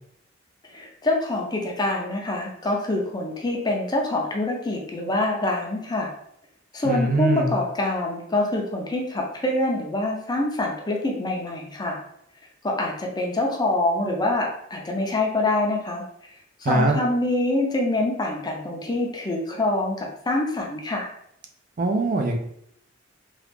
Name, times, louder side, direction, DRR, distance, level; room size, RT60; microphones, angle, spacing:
voice 1, 0.7-6.1 6.7-12.0 12.6-16.0 16.6-21.1, left 2 dB, 20° left, 0 dB, 0.5 m, -25 dB
voice 2, 6.8-7.5 16.6-17.0 21.8-22.4, right 2 dB, 45° right, 3 dB, 0.4 m, -22 dB
3.1 x 2.4 x 3.3 m, 0.73 s
head